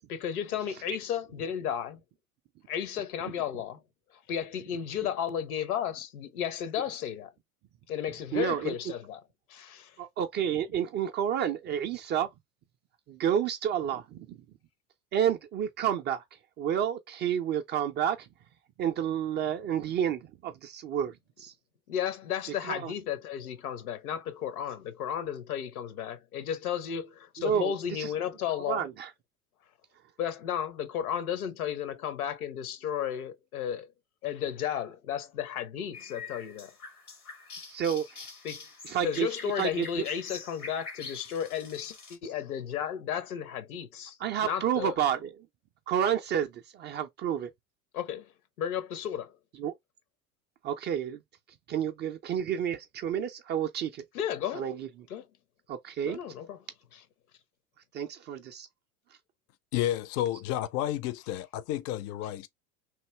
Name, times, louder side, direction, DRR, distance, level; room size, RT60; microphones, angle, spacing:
voice 1, 0.1-2.0 2.7-3.8 4.1-7.3 7.9-9.2 9.5-10.0 21.9-28.9 30.2-33.9 34.2-36.7 38.4-38.7 39.0-44.2 44.4-45.0 47.9-48.3 48.6-49.3 54.1-54.7 55.1-55.3 56.0-56.6 56.9-57.0, left 9 dB, 75° left, 0.9 m, -33 dB
voice 2, 8.3-8.7 10.0-12.3 13.1-14.4 15.1-16.2 16.6-18.3 18.8-21.5 22.6-22.9 27.4-27.7 28.0-28.1 28.6-29.1 37.7-38.0 38.8-39.3 39.6-39.8 44.2-45.3 45.9-47.5 49.6-49.7 50.6-51.2 51.7-54.0 54.6-54.9 55.7-56.2 57.9-58.7, right 9 dB, 25° right, 0.4 m, -30 dB
sound 1, 35.9-42.2, left 4 dB, 90° left, 1.5 m, -45 dB
voice 3, 59.7-62.5, left 13 dB, 35° left, 0.5 m, -31 dB
3.1 x 2.6 x 3.1 m
hypercardioid pair, 85°, 44 cm